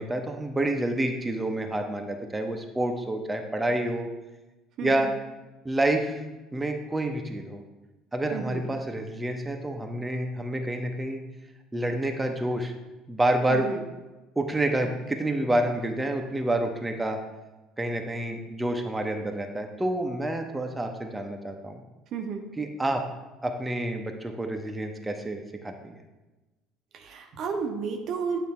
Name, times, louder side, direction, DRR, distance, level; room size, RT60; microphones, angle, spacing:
voice 1, 0.0-4.1 4.8-5.1 5.6-6.2 6.5-7.6 8.1-11.2 11.7-12.7 13.1-13.7 14.4-17.2 17.8-21.8 22.6-23.0 23.4-26.0, right 1 dB, 15° right, 3 dB, 0.8 m, -28 dB
voice 2, 4.8-5.1 8.3-8.6 13.5-13.8 22.1-22.5 26.9-28.4, right 6 dB, 55° right, 3 dB, 0.8 m, -32 dB
8.2 x 3.3 x 4.3 m, 1.1 s
figure-of-eight pair, 60°, 0 cm